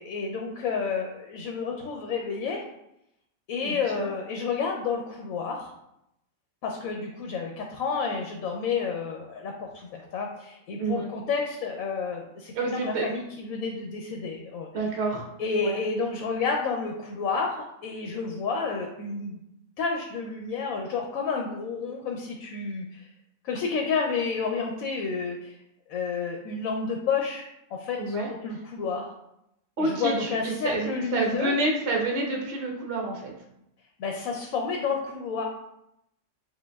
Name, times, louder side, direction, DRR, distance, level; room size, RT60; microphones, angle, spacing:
voice 1, 0.0-2.6 3.5-5.7 6.6-14.7 15.4-19.4 19.8-23.1 23.4-25.6 25.9-28.2 28.4-29.1 29.8-31.5 34.0-35.4, left 5 dB, 75° left, 1 dB, 1.0 m, -30 dB
voice 2, 3.6-4.1 10.8-11.1 12.5-13.1 14.7-15.3 15.6-15.8 28.0-28.3 29.8-33.3, right 2 dB, 60° right, 0 dB, 0.9 m, -28 dB
7.4 x 2.5 x 2.2 m, 0.82 s
omnidirectional pair, 1.5 m